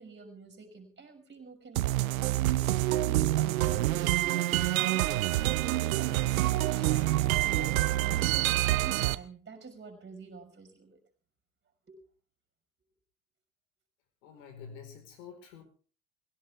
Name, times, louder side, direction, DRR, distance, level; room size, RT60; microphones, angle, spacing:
voice 1, 0.0-11.0 11.9-12.0, right 4 dB, 25° right, 4 dB, 5.9 m, -47 dB
sound 1, 1.8-9.1, right 16 dB, 75° right, 0.8 m, -27 dB
voice 2, 14.2-15.6, left 6 dB, 70° left, 6 dB, 4.8 m, -48 dB
21.0 x 17.0 x 3.6 m, 0.39 s
hypercardioid pair, 75°, 41 cm